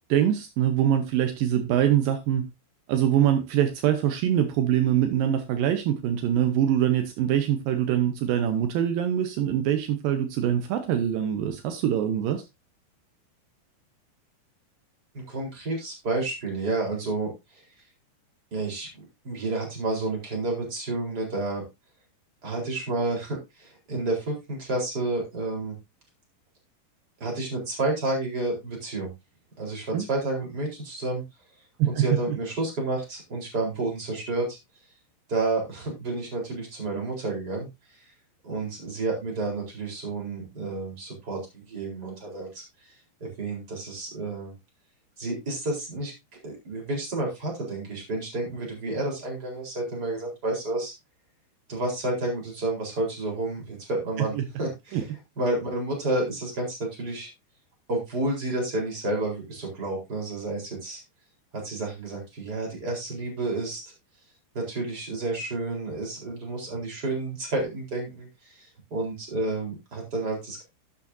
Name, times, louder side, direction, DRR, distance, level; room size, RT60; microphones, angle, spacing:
voice 1, 0.1-2.5 2.9-12.4 29.9-30.0 31.8-32.4 54.4-54.5 54.9-55.0, right 10 dB, 80° right, 7 dB, 2.0 m, -24 dB
voice 2, 15.1-17.6 18.5-21.6 22.4-25.8 27.2-29.1 29.6-31.2 31.8-34.6 35.3-38.1 38.4-44.5 45.2-46.1 46.4-50.9 51.7-57.3 57.9-61.0 61.5-63.9 64.5-70.6, right 2 dB, 20° right, -1 dB, 4.1 m, -30 dB
12.0 x 8.8 x 2.7 m, 0.23 s
omnidirectional pair, 5.2 m